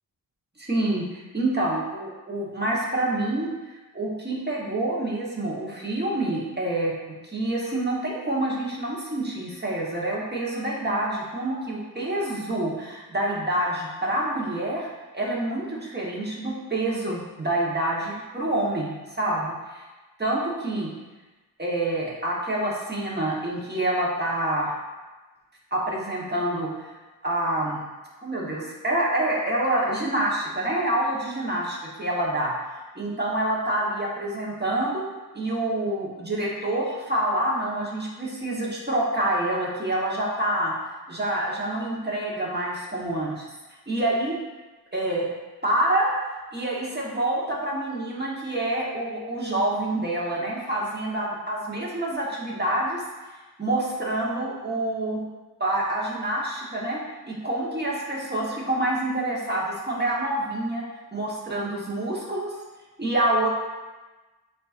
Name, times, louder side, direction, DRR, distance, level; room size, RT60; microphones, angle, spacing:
voice 1, 0.6-3.5 3.9-6.9 7.2-14.9 15.1-19.8 20.2-20.9 21.6-24.7 25.7-26.9 27.2-27.8 28.2-32.5 32.9-35.1 35.3-40.7 41.1-43.5 43.9-44.4 44.9-45.3 45.6-46.1 46.5-53.0 53.6-55.2 55.6-57.0 57.3-60.8 61.1-62.5 63.0-63.5, right 1 dB, 25° right, -4 dB, 1.2 m, -27 dB
7.5 x 2.6 x 2.5 m, 1.2 s
wide cardioid pair, 70°, 39 cm